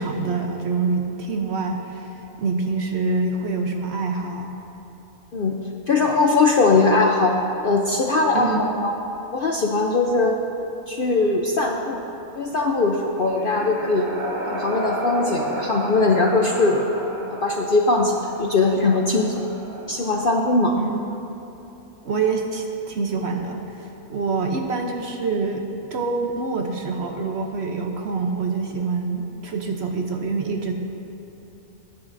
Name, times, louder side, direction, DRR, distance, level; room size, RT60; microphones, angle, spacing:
voice 1, 0.0-4.5 8.3-8.6 20.8-21.0 22.0-25.6 25.9-30.8, right 4 dB, 55° right, 3 dB, 0.9 m, -26 dB
voice 2, 5.9-7.3 7.6-8.9 9.3-10.3 10.9-12.0 12.4-14.1 14.5-16.8 17.4-19.4 19.9-20.8, left 3 dB, 55° left, 0 dB, 0.6 m, -20 dB
sound 1, 13.1-20.8, right 1 dB, 35° right, 1.2 m, -33 dB
19.0 x 9.8 x 2.6 m, 2.9 s
omnidirectional pair, 1.5 m